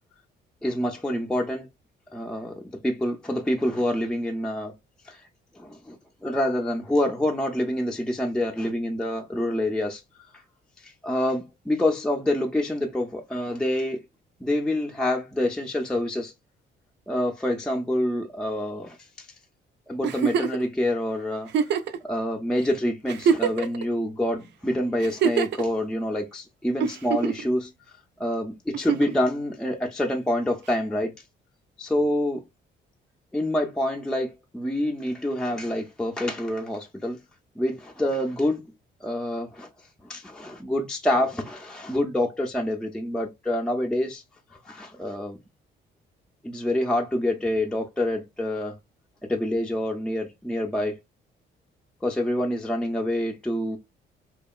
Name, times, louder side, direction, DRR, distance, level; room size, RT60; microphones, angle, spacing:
voice 1, 0.6-1.7 2.1-4.7 5.0-5.2 5.5-6.0 6.2-10.0 10.8-14.0 14.4-16.3 17.1-19.3 19.9-21.5 22.0-27.7 28.2-31.1 31.8-32.4 33.3-37.2 37.6-38.6 39.0-39.7 40.0-44.2 44.7-45.4 46.4-48.8 49.2-51.0 52.0-53.8, left 1 dB, 5° left, 0.4 m, -27 dB
Giggle, 20.0-20.6 21.5-22.0 22.6-22.7 23.1-23.8 25.0-25.6 26.8-27.5 28.7-29.2 30.7-30.8, right 7 dB, 60° right, 0.4 m, -24 dB
2.8 x 2.2 x 2.3 m
cardioid pair, 90°, 20 cm